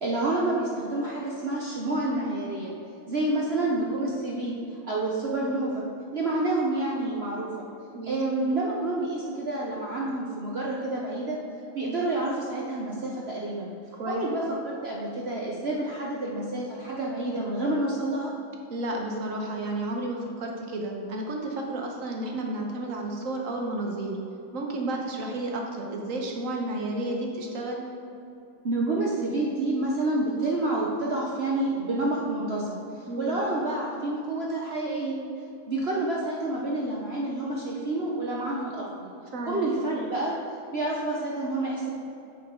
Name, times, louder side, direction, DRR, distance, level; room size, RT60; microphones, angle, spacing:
voice 1, 0.0-2.7 3.1-5.8 6.1-7.5 8.1-11.4 11.7-13.7 14.1-18.3 28.6-32.8 33.2-35.2 35.7-39.1 39.5-40.3 40.7-41.9, right 2 dB, 75° right, -4 dB, 0.5 m, -28 dB
voice 2, 18.7-24.2 24.5-27.8 33.1-33.4 39.3-39.7, right 1 dB, 50° right, 0 dB, 1.1 m, -32 dB
8.6 x 7.3 x 3.7 m, 2.8 s
omnidirectional pair, 2.2 m